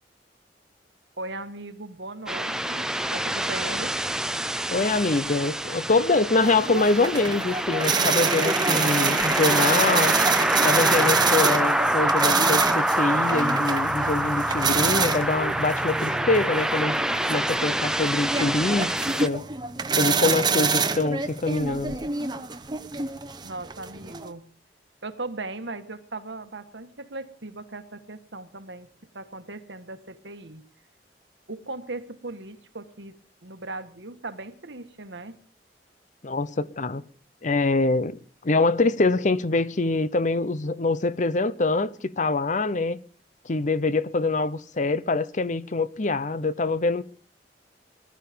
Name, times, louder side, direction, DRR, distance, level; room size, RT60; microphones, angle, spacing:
voice 1, 1.2-4.0 23.4-24.5 25.0-28.9 29.1-30.6 31.5-35.4, right 2 dB, 85° right, 1.6 m, -38 dB
sound 1, 2.3-19.3, right 1 dB, 5° right, 0.6 m, -26 dB
voice 2, 4.7-10.2 10.6-17.0 17.3-18.9 19.2-19.4 20.0-22.0 36.2-37.0 37.4-43.0 43.4-47.0, left 3 dB, 45° left, 0.8 m, -24 dB
sound 2, 6.4-24.3, right 5 dB, 25° right, 1.0 m, -27 dB
20.0 x 12.5 x 5.2 m
head